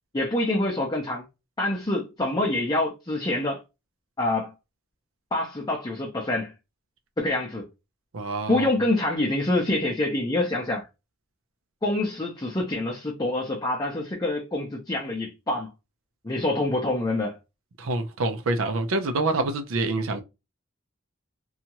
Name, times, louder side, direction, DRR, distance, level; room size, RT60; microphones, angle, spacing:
voice 1, 0.1-1.2 1.6-3.6 4.2-4.5 5.3-6.5 7.2-7.7 8.5-10.9 11.8-15.7 16.2-17.4, left 2 dB, 20° left, 0.6 m, -26 dB
voice 2, 8.1-8.7 17.8-20.2, right 2 dB, 80° right, 0.5 m, -26 dB
2.8 x 2.3 x 2.8 m
head